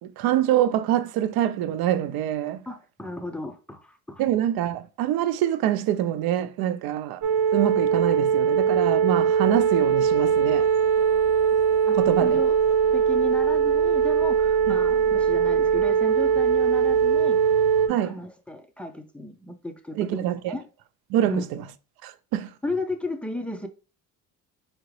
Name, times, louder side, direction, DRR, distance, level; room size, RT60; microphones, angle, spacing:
voice 1, 0.0-2.6 4.2-7.2 7.5-10.7 11.9-12.4 14.7-14.8 17.9-18.2 20.0-20.5 21.1-21.6 22.0-22.5, right 11 dB, 80° right, 0.5 m, -25 dB
voice 2, 2.7-4.2 11.9-12.6 12.9-17.4 18.0-20.7 21.3-21.4 22.6-23.7, left 2 dB, 5° left, 0.4 m, -34 dB
sound 1, 7.2-17.9, right 7 dB, 55° right, 0.9 m, -21 dB
4.9 x 2.9 x 3.0 m
cardioid pair, 150°, 36 cm